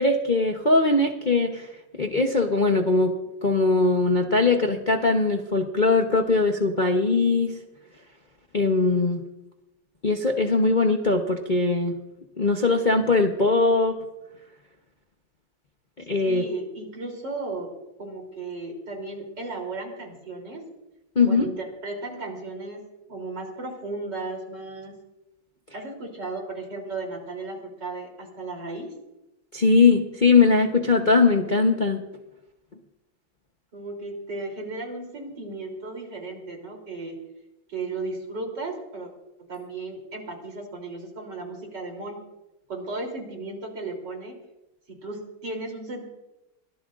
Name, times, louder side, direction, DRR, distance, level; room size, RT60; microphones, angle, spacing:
voice 1, 0.0-1.7 2.0-3.2 3.4-7.5 8.5-9.2 10.0-11.9 12.4-14.0 16.1-16.4 21.2-21.5 29.5-32.0, left 3 dB, 35° left, 2 dB, 0.9 m, -20 dB
voice 2, 16.3-17.7 18.0-20.7 21.2-22.8 23.1-25.0 25.7-28.9 33.7-37.2 37.7-39.1 39.5-42.2 42.7-44.3 44.9-46.1, right 3 dB, 70° right, 1 dB, 4.1 m, -35 dB
23.5 x 17.5 x 2.5 m, 0.94 s
omnidirectional pair, 2.0 m